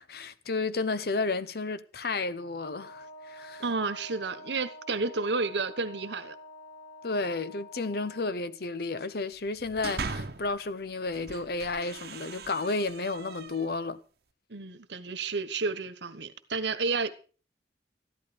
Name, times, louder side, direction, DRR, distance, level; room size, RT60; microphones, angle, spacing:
voice 1, 0.0-3.6 7.0-14.0, left 3 dB, 60° left, 0.9 m, -32 dB
Wind instrument woodwind instrument, 2.7-8.4, left 1 dB, 90° left, 5.6 m, -48 dB
voice 2, 3.6-6.3 14.5-17.1, right 4 dB, 75° right, 1.3 m, -31 dB
sound 1, 9.5-10.6 11.1-13.9, right 4 dB, 60° right, 1.0 m, -40 dB
14.0 x 11.5 x 5.1 m
head